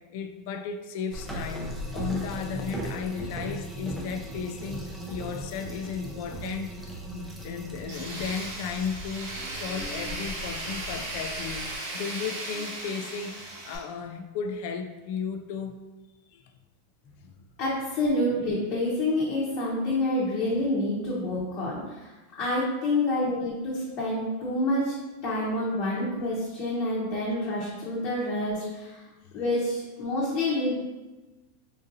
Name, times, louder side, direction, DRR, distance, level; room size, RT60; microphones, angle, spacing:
voice 1, 0.1-11.7 11.9-15.8 16.3-16.4 17.2-17.3, left 6 dB, 60° left, 6 dB, 0.3 m, -35 dB
sound 1, 1.1-11.8, right 1 dB, 5° right, 0.5 m, -38 dB
Tools, 7.9-13.8, right 2 dB, 70° right, 1.2 m, -36 dB
voice 2, 17.6-22.1 22.4-24.9 25.2-29.0 29.3-30.7, left 1 dB, 40° left, -7 dB, 0.8 m, -28 dB
3.8 x 2.6 x 2.6 m, 1.1 s
supercardioid pair, 140°, 0 cm